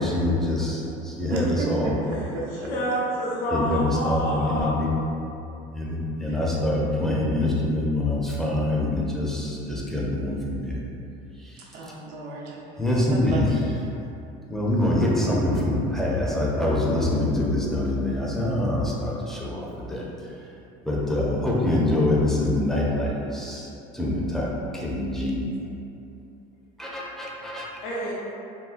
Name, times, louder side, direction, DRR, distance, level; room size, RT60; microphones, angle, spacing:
voice 1, 0.0-2.2 3.5-4.9 5.7-10.8 11.3-11.9 12.8-13.6 14.5-20.5 20.8-25.4 26.8-27.7, left 1 dB, ahead, -5 dB, 0.4 m, -25 dB
voice 2, 1.3-1.7 2.1-2.9 6.3-6.4 6.8-6.9 11.7-12.6 13.2-13.4, right 3 dB, 75° right, -4 dB, 0.7 m, -33 dB
voice 3, 2.7-4.8 27.8-28.1, equal, 90° left, -6 dB, 0.6 m, -27 dB
3.7 x 2.1 x 2.4 m, 2.7 s
cardioid pair, 125°, 18 cm